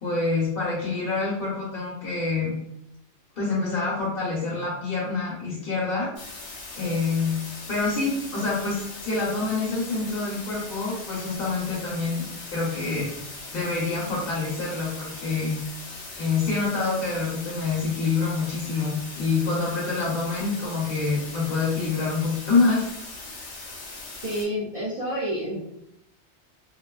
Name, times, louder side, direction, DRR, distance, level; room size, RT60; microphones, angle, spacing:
voice 1, 0.0-2.5 3.4-6.1 6.8-7.4 7.7-13.1 13.5-15.6 16.2-22.9 23.3-23.5, left 4 dB, 60° left, -6 dB, 0.8 m, -26 dB
sound 1, 6.2-24.5, left 3 dB, 85° left, 0.9 m, -40 dB
voice 2, 24.2-25.7, equal, 50° right, -6 dB, 0.4 m, -29 dB
2.4 x 2.3 x 2.3 m, 0.78 s
omnidirectional pair, 1.1 m